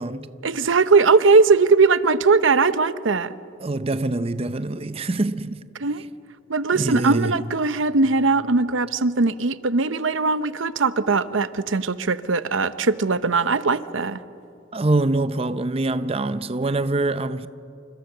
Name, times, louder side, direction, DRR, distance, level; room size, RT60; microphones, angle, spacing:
voice 1, 0.4-3.3 5.8-6.1 6.5-14.2, right 4 dB, 90° right, 0.8 m, -20 dB
voice 2, 3.6-5.6 6.7-7.5 14.7-17.5, right 2 dB, 30° right, 0.6 m, -24 dB
28.5 x 26.0 x 6.7 m
head